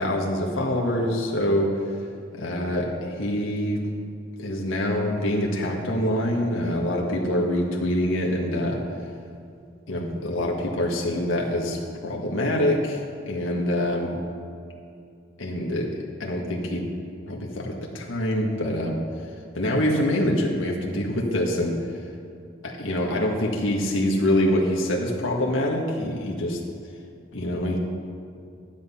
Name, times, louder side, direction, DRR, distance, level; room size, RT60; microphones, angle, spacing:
voice 1, 0.0-1.8 2.4-3.8 4.4-8.8 9.9-14.2 15.4-15.9 16.2-16.8 17.3-19.0 19.5-21.9 22.6-26.6 27.3-27.8, left 1 dB, 90° left, -1 dB, 1.7 m, -25 dB
13.5 x 10.5 x 5.7 m, 2.4 s
head